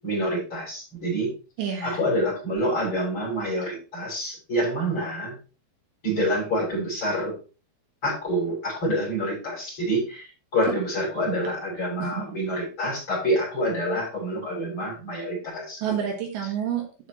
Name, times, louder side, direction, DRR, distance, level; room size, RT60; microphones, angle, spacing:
voice 1, 0.0-1.3 1.8-5.4 6.0-7.4 8.0-15.8, equal, 25° left, -3 dB, 7.3 m, -27 dB
voice 2, 1.6-2.0 12.0-12.3 15.8-17.1, right 8 dB, 70° right, 2 dB, 3.5 m, -29 dB
13.5 x 7.2 x 3.1 m, 0.34 s
omnidirectional pair, 5.5 m